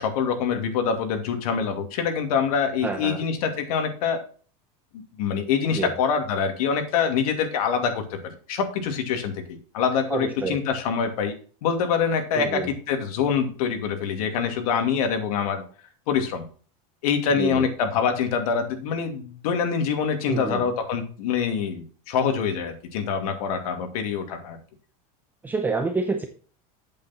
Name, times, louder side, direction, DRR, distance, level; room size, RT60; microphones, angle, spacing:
voice 1, 0.0-4.2 5.2-11.3 11.6-15.6 16.1-16.4 17.0-24.6, left 6 dB, 75° left, 6 dB, 2.6 m, -25 dB
voice 2, 2.8-3.2 5.7-5.9 10.1-10.6 12.3-12.7 17.4-17.7 20.3-20.7 25.4-26.2, right 4 dB, 10° right, 5 dB, 0.7 m, -28 dB
8.4 x 8.4 x 4.3 m, 0.40 s
supercardioid pair, 165°, 19 cm